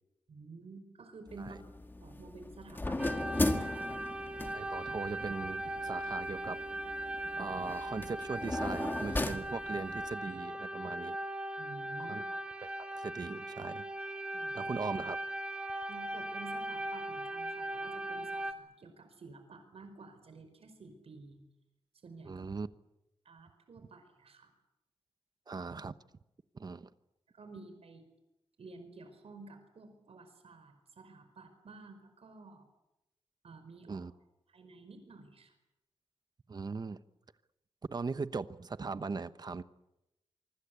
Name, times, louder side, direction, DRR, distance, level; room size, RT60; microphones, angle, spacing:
voice 1, 0.3-1.7 2.0-4.0 11.6-12.2 14.3-14.7 15.9-21.4 22.0-22.4 23.2-24.5 27.3-28.0 28.6-32.6 33.4-34.0 34.5-35.5, right 3 dB, 75° right, 7 dB, 5.1 m, -51 dB
sound 1, 1.3-10.2, left 2 dB, 20° left, 1.6 m, -38 dB
sound 2, 3.0-18.5, right 1 dB, 10° right, 1.6 m, -39 dB
voice 2, 4.5-6.6 7.4-11.2 12.0-12.2 12.6-13.8 14.5-15.2 22.2-22.7 25.5-25.9 26.5-26.9 33.9-34.1 36.5-37.0 37.9-39.6, right 4 dB, 40° right, 13 dB, 1.0 m, -39 dB
26.0 x 24.0 x 8.3 m, 0.91 s
wide cardioid pair, 150°, 10 cm